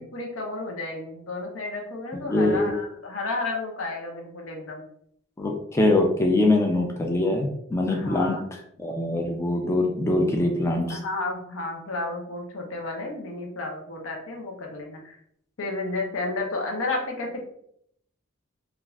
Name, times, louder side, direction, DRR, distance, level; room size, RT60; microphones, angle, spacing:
voice 1, 0.0-4.8 7.9-8.4 10.9-15.2 15.6-17.4, left 2 dB, 85° left, 1 dB, 0.7 m, -32 dB
voice 2, 2.1-2.6 5.4-8.4 8.8-11.0, left 2 dB, 15° left, 1 dB, 0.3 m, -23 dB
2.4 x 2.3 x 3.2 m, 0.70 s
head